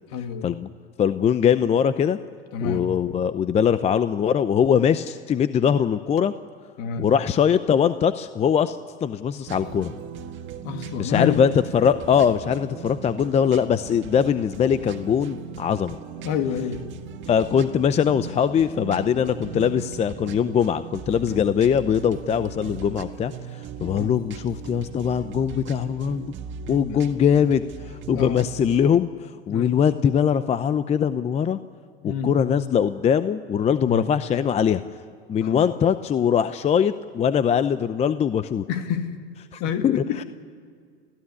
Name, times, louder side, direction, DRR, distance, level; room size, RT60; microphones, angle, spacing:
voice 1, 0.1-0.6 2.5-2.9 6.8-7.1 10.6-11.4 16.2-16.9 19.1-19.2 23.8-24.1 26.9-27.1 28.1-28.4 29.5-29.8 32.0-32.4 33.8-34.1 35.4-35.7 38.7-39.2 39.6-40.2, left 7 dB, 50° left, 6 dB, 2.5 m, -29 dB
voice 2, 1.0-2.2 2.6-6.3 7.0-9.9 11.0-16.0 17.3-23.3 23.8-26.3 26.7-29.1 29.5-31.6 32.0-34.8 35.3-38.6 39.5-40.2, left 8 dB, 20° left, 13 dB, 0.6 m, -22 dB
sound 1, 9.5-28.9, right 6 dB, 35° right, 1.8 m, -38 dB
30.0 x 14.5 x 9.9 m, 2.1 s
hypercardioid pair, 115°, 32 cm